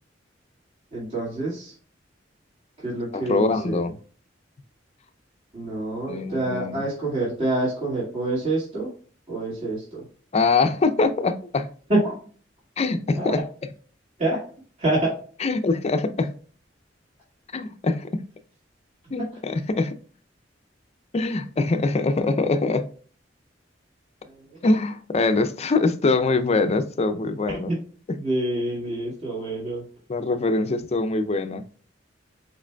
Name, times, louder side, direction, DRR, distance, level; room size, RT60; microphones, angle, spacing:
voice 1, 0.9-1.7 2.8-3.8 5.5-8.9 9.3-10.1 11.9-12.1 13.1-13.3 14.2-14.4 14.8-15.1 24.2-24.6 27.7-27.8 28.2-29.8, right 2 dB, 40° right, 1.9 m, -26 dB
voice 2, 3.1-4.0 6.1-6.8 10.3-11.7 12.8-13.4 15.4-16.4 17.5-18.1 19.1-20.0 21.1-22.9 24.6-27.7 30.1-31.6, left 3 dB, 35° left, 0.5 m, -23 dB
4.9 x 4.5 x 2.2 m
head